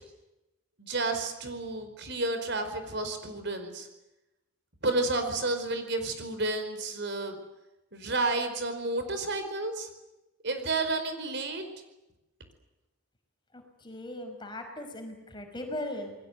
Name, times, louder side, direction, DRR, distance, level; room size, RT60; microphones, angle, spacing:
voice 1, 0.8-3.9 4.8-7.4 7.9-9.9 10.4-11.6, right 2 dB, 55° right, 8 dB, 4.8 m, -31 dB
voice 2, 13.5-16.2, left 1 dB, 20° left, 5 dB, 5.4 m, -38 dB
28.5 x 21.0 x 8.2 m, 0.94 s
head